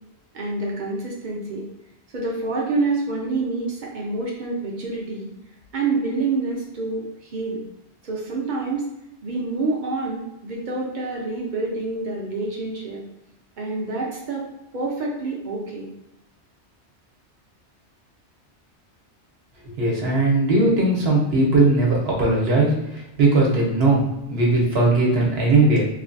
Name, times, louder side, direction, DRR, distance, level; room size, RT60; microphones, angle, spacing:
voice 1, 0.3-1.6 2.1-5.3 5.7-7.6 8.0-8.8 9.2-13.0 13.6-14.5 14.7-15.9, right 3 dB, 50° right, -2 dB, 0.7 m, -27 dB
voice 2, 19.6-25.9, right 2 dB, 65° right, -3 dB, 1.1 m, -19 dB
3.2 x 2.3 x 2.5 m, 0.90 s
omnidirectional pair, 1.2 m